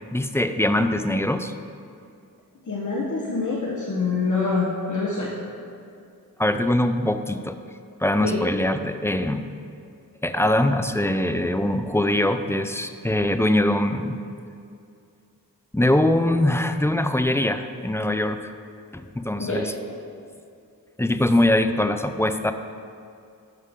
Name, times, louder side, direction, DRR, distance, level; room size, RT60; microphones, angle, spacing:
voice 1, 0.1-1.5 6.4-7.6 8.0-9.5 10.2-14.2 15.7-18.5 18.9-19.7 21.0-22.5, left 1 dB, 5° left, 9 dB, 0.4 m, -22 dB
voice 2, 2.7-5.3 8.2-8.4 19.4-19.6, left 4 dB, 55° left, -4 dB, 1.2 m, -25 dB
12.0 x 6.6 x 3.7 m, 2.4 s
wide cardioid pair, 75°, 36 cm